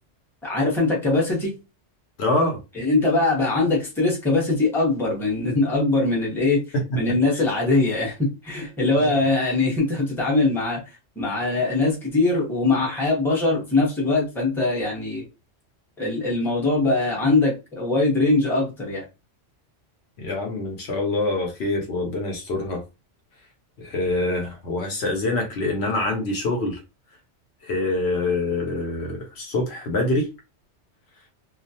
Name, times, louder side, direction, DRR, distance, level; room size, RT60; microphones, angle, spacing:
voice 1, 0.4-1.5 2.7-6.6 6.9-10.8 11.2-15.2 16.0-19.0, left 2 dB, ahead, 0.7 m, -22 dB
voice 2, 2.2-2.6 6.7-7.0 7.3-7.4 9.0-9.2 20.2-22.8 23.8-26.8 27.6-30.3, left 2 dB, 65° left, 0.9 m, -25 dB
2.3 x 2.1 x 2.7 m
omnidirectional pair, 1.2 m